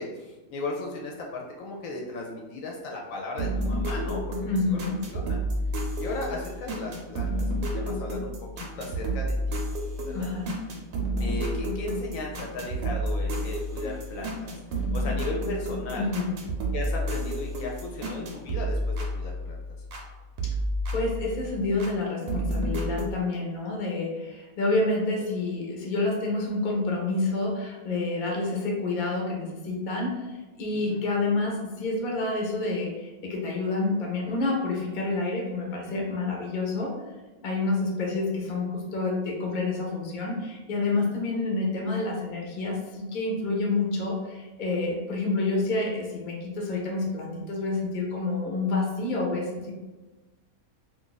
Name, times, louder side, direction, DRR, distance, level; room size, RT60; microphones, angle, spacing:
voice 1, 0.0-4.4 4.7-5.4 6.0-7.3 7.7-8.3 8.6-9.6 10.0-10.3 11.2-16.1 16.7-19.6 30.7-31.0, left 2 dB, 70° left, -1 dB, 0.9 m, -36 dB
sound 1, 3.4-20.1 20.4-21.9 22.3-23.1, equal, 55° right, 0.7 m, -30 dB
voice 2, 4.4-5.0 10.1-10.5 15.9-16.3 20.9-36.9 37.4-49.7, left 3 dB, 45° left, -1 dB, 0.7 m, -28 dB
2.5 x 2.5 x 3.9 m, 1.2 s
omnidirectional pair, 1.5 m